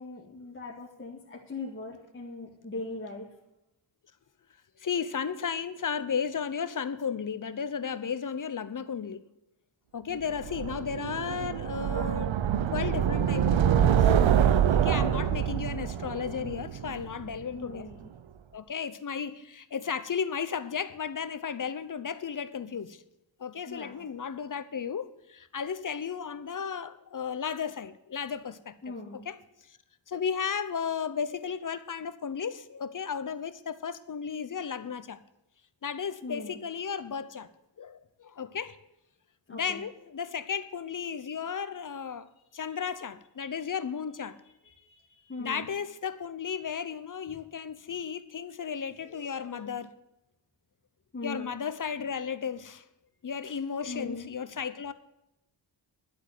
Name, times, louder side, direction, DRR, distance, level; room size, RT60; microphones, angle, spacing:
voice 1, 0.0-3.3 10.1-10.2 14.9-15.4 17.5-18.1 23.7-24.0 28.8-29.3 36.2-36.6 39.5-39.8 44.6-45.7 51.1-51.5 53.9-54.3, left 3 dB, 25° left, 2.0 m, -40 dB
voice 2, 4.8-9.2 9.9-12.3 12.7-14.1 14.7-17.9 18.5-23.0 23.4-28.9 29.2-29.4 30.1-35.2 35.8-37.5 37.8-38.8 39.5-44.4 45.4-49.9 51.2-52.8 53.2-54.9, left 6 dB, 45° left, 0.8 m, -34 dB
sound 1, 10.4-17.4, right 9 dB, 90° right, 0.8 m, -25 dB
11.5 x 8.2 x 9.1 m
wide cardioid pair, 150°, 45 cm